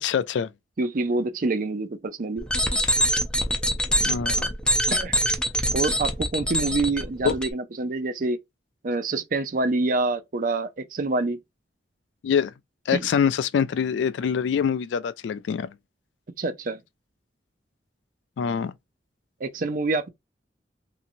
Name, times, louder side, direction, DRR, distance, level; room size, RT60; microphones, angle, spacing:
voice 1, 0.0-0.5 4.0-4.5 7.2-7.3 12.2-12.5 12.9-15.7 18.4-18.7, left 7 dB, 80° left, 0.3 m, -24 dB
voice 2, 0.8-2.5 4.9-5.1 5.7-8.4 8.8-11.4 12.9-13.1 16.4-16.8 19.4-20.1, right 3 dB, 50° right, 0.5 m, -26 dB
sound 1, 2.4-7.5, equal, 5° left, 0.5 m, -24 dB
2.8 x 2.7 x 2.5 m
head